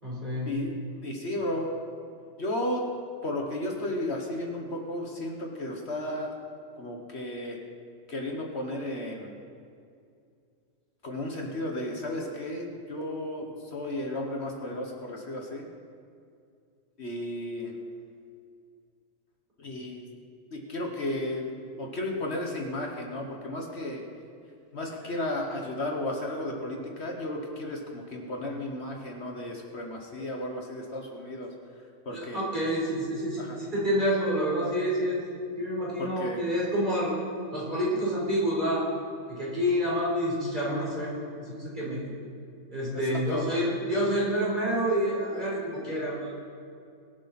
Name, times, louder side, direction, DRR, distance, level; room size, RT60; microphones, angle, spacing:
voice 1, 0.0-0.5 32.1-35.2 35.6-37.2 37.5-38.9 39.3-42.0 42.7-46.3, equal, 35° right, -5 dB, 4.4 m, -28 dB
voice 2, 1.0-1.7 2.4-2.8 3.2-6.4 6.8-7.6 8.1-9.3 11.0-15.6 17.0-17.7 19.6-20.1 20.5-21.5 21.8-24.0 24.7-31.5 32.0-32.4 33.4-33.6 36.0-36.4 42.9-43.4, left 1 dB, 55° left, 1 dB, 1.7 m, -34 dB
23.5 x 8.0 x 4.3 m, 2.4 s
omnidirectional pair, 1.4 m